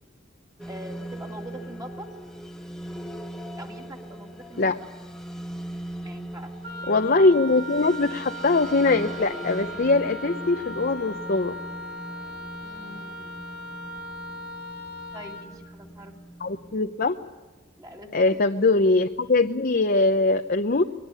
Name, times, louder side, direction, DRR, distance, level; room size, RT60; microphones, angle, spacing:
sound 1, 0.6-16.8, right 1 dB, 5° left, 1.3 m, -40 dB
voice 1, 0.7-2.1 3.5-4.8 6.0-6.5 12.6-13.4 15.1-16.1 17.8-18.4, right 1 dB, 20° right, 1 dB, 2.7 m, -43 dB
Wind instrument woodwind instrument, 6.6-15.5, equal, 60° right, 5.0 m, -38 dB
voice 2, 6.9-11.6 16.4-17.2 18.1-20.8, left 3 dB, 50° left, 5 dB, 0.8 m, -22 dB
23.0 x 19.5 x 9.9 m, 1.2 s
head